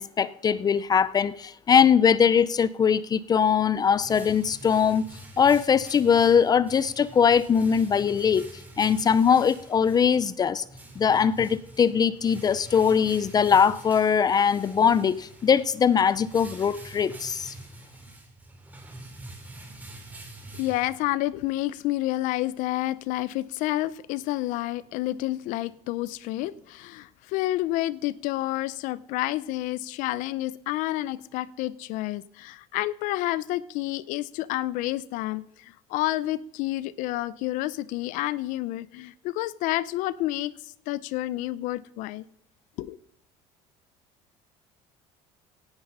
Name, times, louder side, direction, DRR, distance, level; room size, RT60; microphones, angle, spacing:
voice 1, 0.0-5.0 5.4-8.5 8.8-10.6 11.0-17.5, left 7 dB, 30° left, 0.5 m, -21 dB
sound 1, 3.5-21.3, right 2 dB, 10° right, 3.1 m, -46 dB
voice 2, 20.5-42.3 42.8-43.0, left 16 dB, 75° left, 0.6 m, -29 dB
17.5 x 10.0 x 5.5 m
cardioid pair, 120°, 14 cm